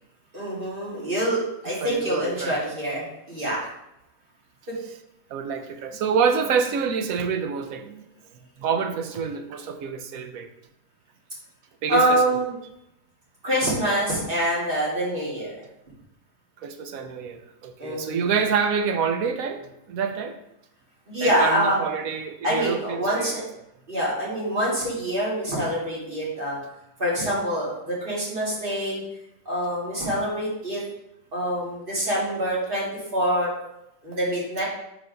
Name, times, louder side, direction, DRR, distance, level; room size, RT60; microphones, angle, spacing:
voice 1, 0.3-3.6 4.7-4.8 11.9-12.5 13.4-15.5 17.8-18.2 21.1-21.8 22.4-23.4 23.9-26.6 27.0-29.0 29.5-30.8 31.3-32.9 33.1-33.5 34.0-34.6, equal, 35° right, -6 dB, 2.3 m, -25 dB
voice 2, 1.8-2.7 5.3-8.0 8.6-10.5 11.8-12.2 16.6-20.4 21.2-23.3, right 6 dB, 70° right, 7 dB, 1.0 m, -27 dB
4.8 x 4.5 x 5.1 m, 0.84 s
omnidirectional pair, 1.7 m